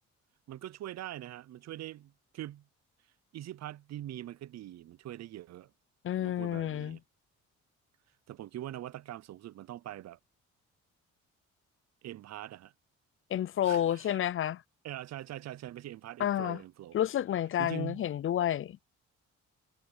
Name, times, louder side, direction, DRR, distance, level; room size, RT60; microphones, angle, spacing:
voice 1, 0.5-2.6 3.3-5.7 6.2-7.0 8.3-10.2 12.0-12.7 13.6-14.2 14.8-17.0 17.6-18.0, right 13 dB, 60° right, 0.6 m, -43 dB
voice 2, 6.0-7.0 13.3-14.6 16.2-16.6 16.9-18.8, left 11 dB, 45° left, 0.5 m, -30 dB
cardioid pair, 90°, 30 cm